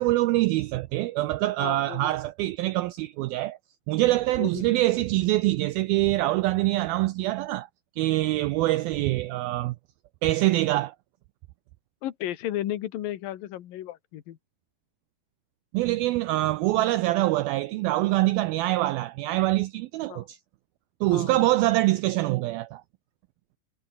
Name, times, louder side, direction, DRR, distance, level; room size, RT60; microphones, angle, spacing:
voice 1, 0.0-3.6 3.9-7.7 8.0-9.8 10.2-11.0 15.7-20.4 21.0-22.8, right 17 dB, 85° right, 2.1 m, -24 dB
voice 2, 1.6-2.2 4.4-4.8 12.0-14.4 20.1-20.3 21.1-21.5, left 13 dB, 60° left, 3.0 m, -34 dB
omnidirectional pair, 5.0 m